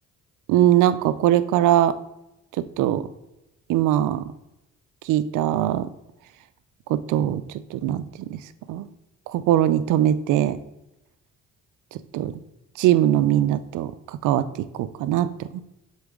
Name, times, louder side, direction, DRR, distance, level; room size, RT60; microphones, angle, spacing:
voice 1, 0.5-2.0 2.6-3.1 3.7-4.2 5.0-5.9 6.9-8.4 8.7-8.9 9.3-10.6 12.1-12.3 12.8-15.6, right 12 dB, 85° right, 14 dB, 0.5 m, -21 dB
7.2 x 3.9 x 3.6 m, 0.90 s
cardioid pair, 90°, 30 cm